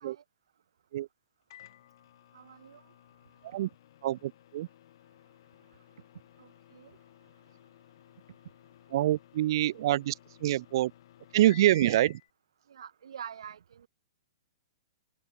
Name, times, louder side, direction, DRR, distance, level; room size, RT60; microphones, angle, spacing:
Microwave oven, 1.5-12.3, left 12 dB, 60° left, 1.1 m, -55 dB
voice 1, 2.3-2.8 6.4-6.9 12.7-13.9, right 8 dB, 85° right, 0.8 m, -46 dB
voice 2, 4.0-4.7 8.9-10.1 10.4-10.9 11.3-12.2, right 14 dB, 55° right, 0.6 m, -26 dB
open air
hypercardioid pair, 145°, 3 cm